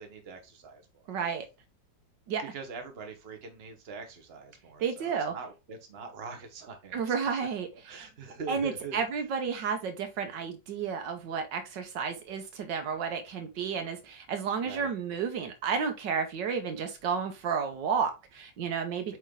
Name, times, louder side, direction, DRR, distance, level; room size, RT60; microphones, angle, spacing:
voice 1, 0.0-1.0 2.5-7.0 7.8-9.0 14.6-14.9 19.1-19.2, right 5 dB, 35° right, 1.3 m, -43 dB
voice 2, 1.1-1.5 2.3-2.4 4.8-5.3 6.9-8.1 8.5-19.2, right 6 dB, 75° right, 1.6 m, -32 dB
8.0 x 3.3 x 3.7 m
omnidirectional pair, 2.0 m